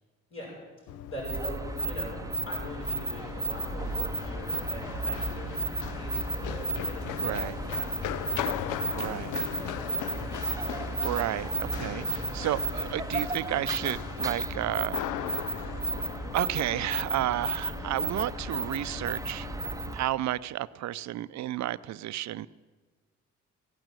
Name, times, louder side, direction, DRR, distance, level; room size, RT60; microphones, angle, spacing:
voice 1, 0.3-10.1, equal, 50° left, -7 dB, 6.3 m, -43 dB
Run, 0.9-19.9, left 12 dB, 85° left, 0.5 m, -39 dB
sound 1, 1.2-20.1, right 3 dB, 10° right, 0.7 m, -34 dB
voice 2, 7.2-7.6 8.9-9.3 11.0-15.0 15.4-15.7 16.3-19.5 19.9-22.5, right 14 dB, 65° right, 17 dB, 0.5 m, -32 dB
16.0 x 9.0 x 9.0 m, 1.3 s
cardioid pair, 90°, 30 cm